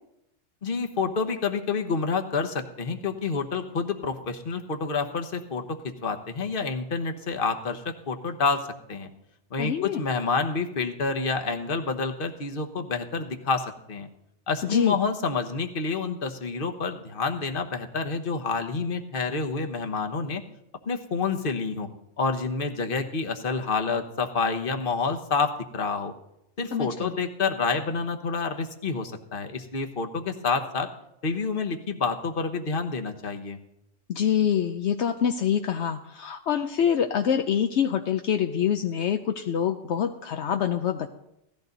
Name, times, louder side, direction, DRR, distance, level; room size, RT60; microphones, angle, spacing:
voice 1, 0.6-9.1 9.5-14.1 14.5-20.4 20.9-21.9 22.2-26.1 26.6-30.9 31.2-33.6, left 4 dB, 50° left, 5 dB, 1.3 m, -28 dB
voice 2, 9.6-10.0 14.6-15.0 26.7-27.2 34.1-41.1, left 8 dB, 70° left, 6 dB, 1.0 m, -25 dB
17.0 x 14.0 x 4.0 m, 0.82 s
omnidirectional pair, 1.2 m